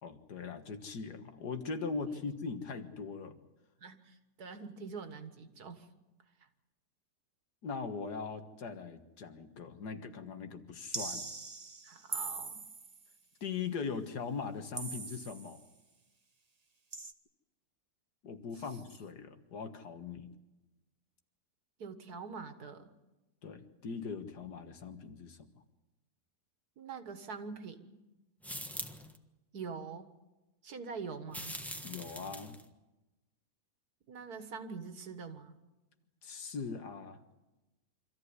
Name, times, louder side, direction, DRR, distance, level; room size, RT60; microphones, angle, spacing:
voice 1, 0.0-3.4 7.6-11.3 13.4-15.6 18.2-20.3 23.4-25.4 31.8-32.6 36.2-37.2, left 5 dB, 85° left, 8 dB, 2.1 m, -40 dB
voice 2, 3.8-5.9 11.8-12.7 21.8-22.9 26.8-27.9 29.5-30.1 30.6-31.5 34.1-35.6, right 5 dB, 70° right, 9 dB, 2.1 m, -44 dB
sound 1, 10.9-13.1 14.8-15.6 16.9-17.1, right 4 dB, 30° right, 1.0 m, -41 dB
sound 2, 28.4-29.2 31.3-32.6, equal, ahead, 1.2 m, -42 dB
25.5 x 14.5 x 9.6 m, 1.1 s
omnidirectional pair, 1.7 m